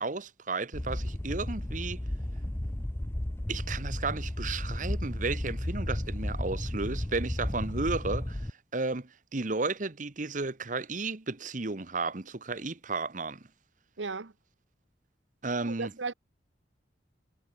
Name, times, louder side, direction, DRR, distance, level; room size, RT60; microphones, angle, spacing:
voice 1, 0.0-2.0 3.5-13.4 15.4-15.9, right 3 dB, 45° right, 1.1 m, -33 dB
sound 1, 0.7-8.5, left 1 dB, 15° left, 0.6 m, -33 dB
voice 2, 14.0-14.3 15.6-16.1, right 4 dB, 85° right, 1.0 m, -35 dB
head